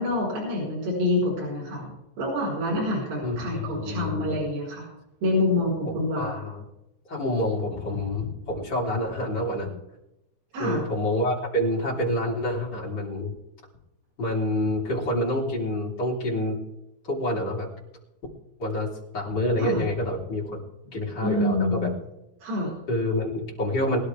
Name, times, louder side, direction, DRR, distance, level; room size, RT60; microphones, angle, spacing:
voice 1, 0.0-1.9 2.2-4.9 5.2-6.4 10.5-10.8 19.6-19.8 21.2-21.9 22.4-22.8, left 1 dB, 70° right, -5 dB, 6.4 m, -26 dB
voice 2, 3.2-4.4 6.1-6.6 7.1-9.7 10.6-13.3 14.2-16.6 17.0-17.7 18.6-20.6 20.9-21.9 22.9-24.0, left 1 dB, 30° left, -4 dB, 3.7 m, -27 dB
22.5 x 11.5 x 3.4 m, 0.92 s
omnidirectional pair, 4.3 m